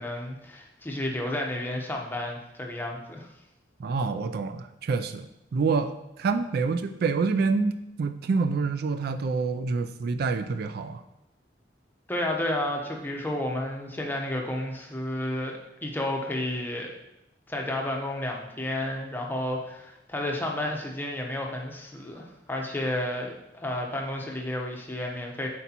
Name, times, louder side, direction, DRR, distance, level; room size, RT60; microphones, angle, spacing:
voice 1, 0.0-3.3 12.1-16.9 17.5-25.5, left 1 dB, 10° left, 0 dB, 0.8 m, -31 dB
voice 2, 3.8-11.0, right 4 dB, 60° right, 10 dB, 0.3 m, -27 dB
8.0 x 4.6 x 2.9 m, 0.90 s
head